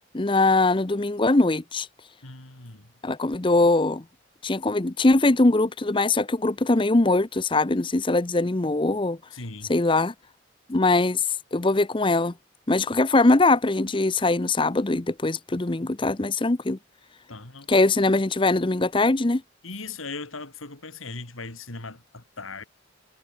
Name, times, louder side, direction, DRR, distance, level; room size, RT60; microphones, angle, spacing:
voice 1, 0.1-1.9 3.0-4.0 4.4-9.2 9.7-10.1 10.7-12.3 12.7-16.8 17.7-19.4, left 2 dB, 25° left, 0.7 m, -22 dB
voice 2, 2.2-2.9 9.3-9.7 17.3-17.7 19.6-22.6, left 3 dB, 90° left, 3.3 m, -38 dB
head